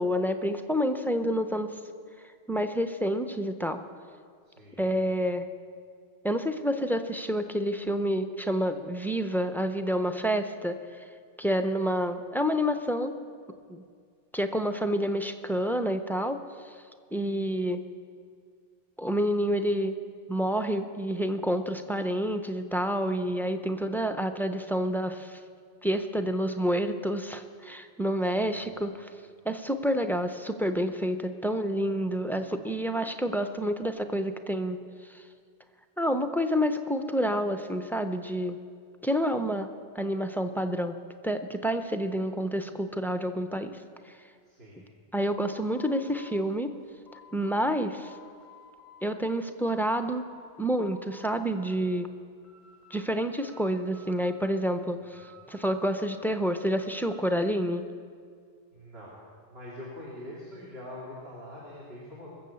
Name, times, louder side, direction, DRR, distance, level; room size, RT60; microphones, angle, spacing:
voice 1, 0.0-1.7 2.5-3.8 4.8-5.5 6.2-10.8 11.4-13.1 13.7-13.8 14.3-16.4 17.1-17.9 19.0-20.0 20.3-25.4 25.8-29.1 29.4-34.8 35.1-35.2 36.0-38.6 39.0-39.7 39.9-41.0 41.2-43.7 45.1-46.7 47.3-48.1 49.0-50.2 50.6-52.1 52.9-57.9, equal, 5° left, 7 dB, 0.5 m, -28 dB
voice 2, 4.6-4.9 28.4-28.5 44.5-44.9 58.7-59.2 59.5-62.3, left 1 dB, 70° right, -6 dB, 2.9 m, -43 dB
sound 1, 45.3-47.8 48.0-49.1 49.5-50.4 50.7-51.8 52.1-53.1 53.4-54.7 55.1-57.2, left 2 dB, 55° right, 3.9 m, -54 dB
22.0 x 7.6 x 7.0 m, 2.1 s
omnidirectional pair, 1.1 m